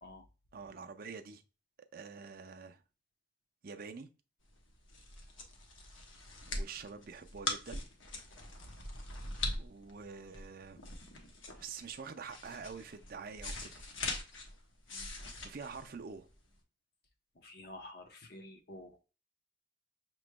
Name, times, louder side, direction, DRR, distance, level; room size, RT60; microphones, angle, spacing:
voice 1, 0.5-1.4 1.8-2.8 3.6-4.1 6.4-7.9 9.6-10.8 11.6-13.7 15.1-16.3, right 5 dB, 50° right, 0.5 m, -46 dB
sound 1, 4.6-16.5, left 2 dB, 80° left, 1.0 m, -42 dB
voice 2, 17.4-19.0, left 1 dB, 50° left, 0.8 m, -50 dB
6.0 x 3.0 x 2.2 m
head